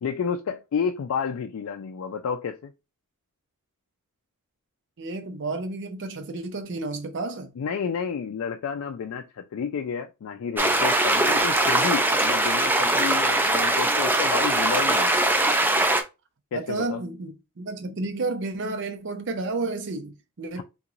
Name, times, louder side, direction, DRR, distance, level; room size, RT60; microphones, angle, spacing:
voice 1, 0.0-2.7 7.6-15.2 16.5-17.0 20.6-20.7, left 6 dB, 65° left, 0.3 m, -31 dB
voice 2, 5.0-7.5 16.5-20.6, right 3 dB, 55° right, 0.6 m, -31 dB
sound 1, 10.6-16.0, right 1 dB, 10° right, 0.4 m, -21 dB
3.5 x 3.0 x 2.5 m
head